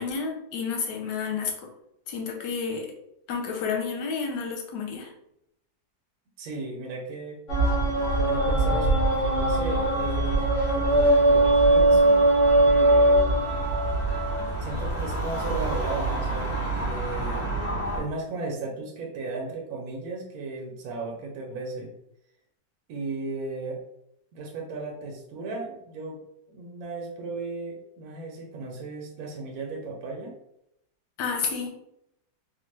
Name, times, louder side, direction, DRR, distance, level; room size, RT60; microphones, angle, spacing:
voice 1, 0.0-1.5 2.1-2.9 3.3-5.1 31.2-31.7, left 5 dB, 90° left, 2 dB, 1.3 m, -30 dB
voice 2, 6.4-7.4 8.2-12.3 12.5-13.2 14.6-17.6 17.9-21.9 22.9-23.8 24.3-26.2 26.5-30.3, right 3 dB, 70° right, 0 dB, 1.0 m, -35 dB
sound 1, 7.5-18.0, right 2 dB, 55° left, 1.3 m, -22 dB
3.5 x 2.1 x 3.2 m, 0.79 s
omnidirectional pair, 1.7 m